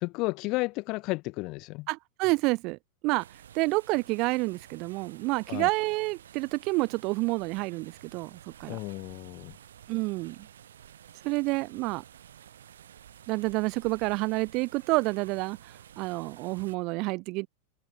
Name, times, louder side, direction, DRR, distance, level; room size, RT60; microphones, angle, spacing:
voice 1, 0.0-1.9 5.5-5.7 8.7-9.6, left 24 dB, 40° left, 1.7 m, -32 dB
voice 2, 1.9-3.2 3.5-8.8 9.9-10.4 11.2-12.0 13.3-17.5, right 25 dB, 40° right, 0.4 m, -29 dB
sound 1, 3.2-16.8, right 10 dB, 65° right, 7.7 m, -52 dB
figure-of-eight pair, 90°, 0 cm